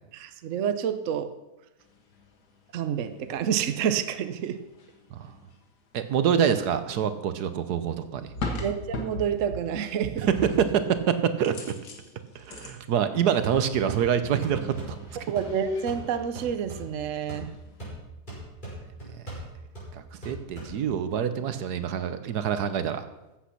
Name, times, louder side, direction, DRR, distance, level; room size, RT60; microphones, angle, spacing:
voice 1, 0.1-1.3 2.7-4.6 8.6-10.3 15.3-17.5, right 8 dB, 60° right, 10 dB, 1.1 m, -29 dB
sound 1, 2.1-2.3 3.2-3.4 3.7-5.5 7.9-9.8 10.0-11.0 11.4-12.8 13.7-13.8 14.0-16.3 16.6-17.4 17.7-17.9, left 2 dB, 80° left, 2.1 m, -38 dB
voice 2, 5.9-8.3 10.2-11.6 12.3-15.2 19.9-23.1, right 8 dB, 75° right, 11 dB, 1.4 m, -26 dB
sound 2, 13.4-21.2, right 1 dB, 30° left, 5.5 m, -42 dB
14.5 x 8.3 x 5.8 m, 0.98 s
omnidirectional pair, 1.7 m